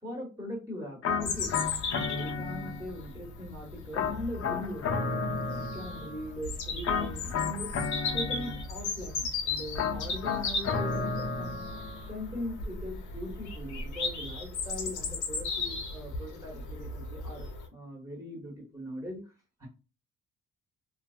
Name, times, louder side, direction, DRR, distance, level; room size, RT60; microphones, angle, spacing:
voice 1, 0.0-1.5 1.9-7.7 8.1-11.6 12.1-19.2 19.6-19.7, left 1 dB, 10° right, -3 dB, 1.2 m, -40 dB
sound 1, 1.0-3.1 3.9-6.3 6.8-8.9 9.8-12.1, left 5 dB, 50° left, 0.6 m, -33 dB
Bird vocalization bird call bird song, 1.2-17.7, left 3 dB, 80° left, 0.8 m, -36 dB
2.5 x 2.2 x 2.4 m, 0.30 s
cardioid pair, 90°, 30 cm